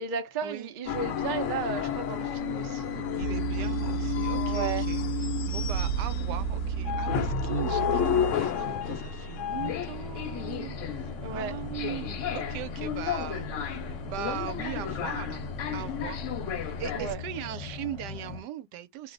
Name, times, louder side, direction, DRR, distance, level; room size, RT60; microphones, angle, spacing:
voice 1, 0.0-3.2 4.3-4.9 11.2-11.5 16.9-17.2, right 6 dB, 55° right, 0.5 m, -34 dB
sound 1, 0.9-17.1, left 7 dB, 65° left, 0.8 m, -32 dB
sound 2, 3.2-8.5, right 9 dB, 25° right, 0.8 m, -33 dB
voice 2, 3.2-5.0 5.5-16.2 16.6-19.1, right 12 dB, 80° right, 1.2 m, -39 dB
sound 3, 9.5-18.4, left 6 dB, 25° left, 0.7 m, -40 dB
2.9 x 2.0 x 3.8 m
omnidirectional pair, 1.8 m